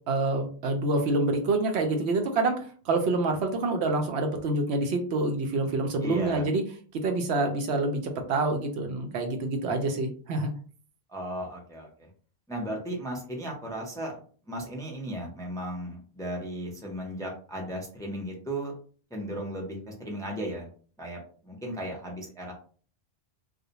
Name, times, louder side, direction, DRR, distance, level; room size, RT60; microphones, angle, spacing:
voice 1, 0.1-2.6 2.9-6.6 7.0-10.5, right 2 dB, 85° right, 5 dB, 0.9 m, -27 dB
voice 2, 6.0-6.4 11.1-12.1 12.5-14.2 14.5-18.7 19.1-20.7 21.0-22.5, right 1 dB, 5° left, -1 dB, 0.4 m, -35 dB
2.5 x 2.1 x 2.8 m, 0.43 s
omnidirectional pair, 1.1 m